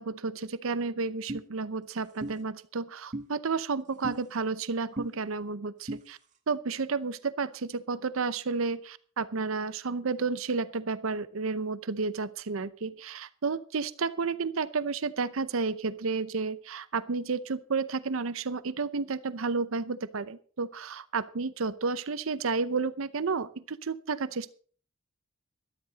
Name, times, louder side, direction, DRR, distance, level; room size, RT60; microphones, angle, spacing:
voice 1, 0.0-6.2 6.5-24.5, right 4 dB, 80° right, 15 dB, 0.7 m, -31 dB
sound 1, 1.3-1.4 2.2-2.4 3.1-3.3 4.0-4.2 5.0-5.1 5.9-6.0, right 1 dB, 35° right, 1.4 m, -35 dB
13.0 x 12.5 x 4.1 m, 0.44 s
head